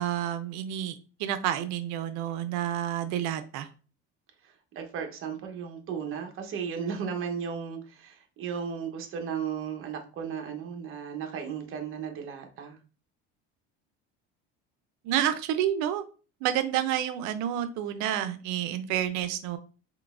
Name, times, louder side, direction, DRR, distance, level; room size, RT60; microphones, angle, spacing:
voice 1, 0.0-3.7 15.0-16.0 16.4-19.6, right 11 dB, 75° right, 11 dB, 0.6 m, -29 dB
voice 2, 4.4-12.8, right 7 dB, 45° right, 4 dB, 0.9 m, -35 dB
3.8 x 3.0 x 2.4 m, 0.36 s
cardioid pair, 130°, 29 cm